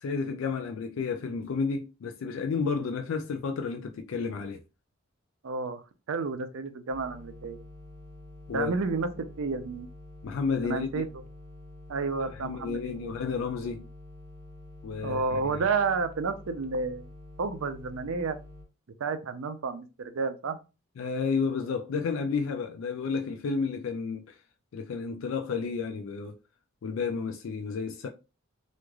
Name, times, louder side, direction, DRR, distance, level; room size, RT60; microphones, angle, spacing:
voice 1, 0.0-4.6 8.5-8.7 10.2-11.0 12.2-13.9 14.8-15.6 21.0-24.4 24.7-26.4 26.8-28.1, left 5 dB, 70° left, 0.3 m, -31 dB
voice 2, 5.4-5.8 6.1-7.6 8.5-9.9 10.6-11.1 11.9-13.1 15.0-17.1 17.4-18.4 19.0-20.6, right 4 dB, 80° right, 0.5 m, -31 dB
sound 1, 6.9-18.6, left 2 dB, 55° right, 0.9 m, -48 dB
3.1 x 2.4 x 2.2 m
head